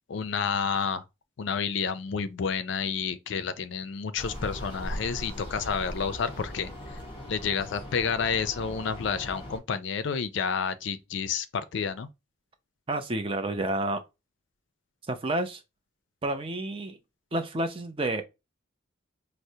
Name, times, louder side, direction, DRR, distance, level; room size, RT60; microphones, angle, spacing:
voice 1, 0.1-1.0 1.4-6.7 7.3-12.1, left 6 dB, 65° left, 0.4 m, -30 dB
sound 1, 4.2-9.6, equal, 25° left, 1.1 m, -39 dB
voice 2, 12.9-14.0 15.1-15.6 16.2-17.0 17.3-18.2, right 2 dB, 25° right, 0.5 m, -29 dB
4.6 x 2.0 x 2.7 m
head